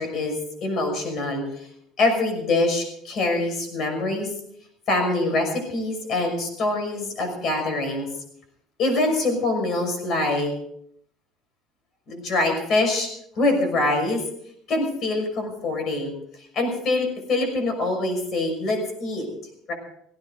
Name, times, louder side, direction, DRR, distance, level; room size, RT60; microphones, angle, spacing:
voice 1, 0.0-1.7 2.0-4.3 4.9-8.1 8.8-10.5 12.1-13.1 13.4-14.2 14.7-16.1 16.5-19.3 19.7-19.8, left 2 dB, 45° left, 5 dB, 5.9 m, -24 dB
18.5 x 16.5 x 3.9 m, 0.70 s
cardioid pair, 150°, 0 cm